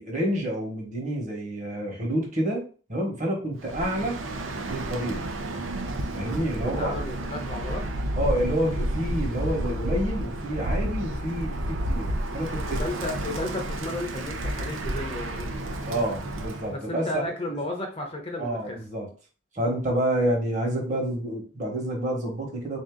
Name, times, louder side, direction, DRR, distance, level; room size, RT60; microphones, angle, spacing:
voice 1, 0.0-4.2 4.7-5.3 6.1-6.9 8.2-12.8 15.8-17.1 17.5-17.6 18.4-19.1 19.5-22.8, right 1 dB, 40° right, 0 dB, 1.2 m, -28 dB
Bird, 3.6-16.7, right 1 dB, 85° right, 0.6 m, -31 dB
voice 2, 6.6-7.8 12.6-15.5 16.7-18.8, left 1 dB, 30° left, 2 dB, 0.7 m, -33 dB
3.7 x 2.7 x 3.7 m, 0.38 s
head